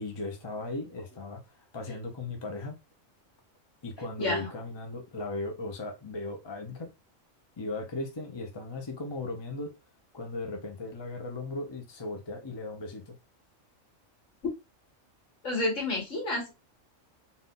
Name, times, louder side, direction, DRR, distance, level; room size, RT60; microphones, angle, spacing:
voice 1, 0.0-2.8 3.8-6.9 7.6-9.7 10.1-13.2, left 2 dB, 25° left, 0.7 m, -37 dB
voice 2, 4.2-4.5 15.4-16.5, left 2 dB, 70° left, 2.2 m, -30 dB
4.1 x 2.6 x 3.8 m
omnidirectional pair, 1.3 m